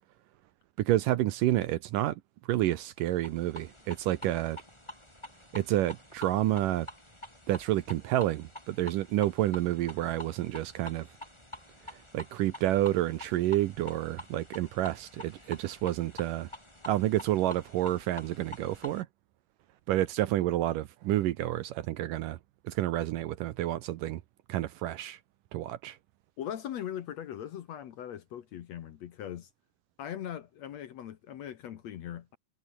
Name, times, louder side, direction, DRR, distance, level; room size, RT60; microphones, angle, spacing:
voice 1, 0.8-2.2 2.5-4.6 5.5-6.9 7.5-11.1 12.1-16.5 16.9-19.1 19.9-22.4 22.6-24.2 24.5-25.2 25.5-26.0, right 14 dB, 75° right, 2.2 m, -29 dB
sound 1, 3.1-19.0, left 1 dB, 5° left, 4.9 m, -48 dB
voice 2, 26.4-29.5 30.0-32.4, left 10 dB, 65° left, 1.8 m, -40 dB
omnidirectional pair, 4.4 m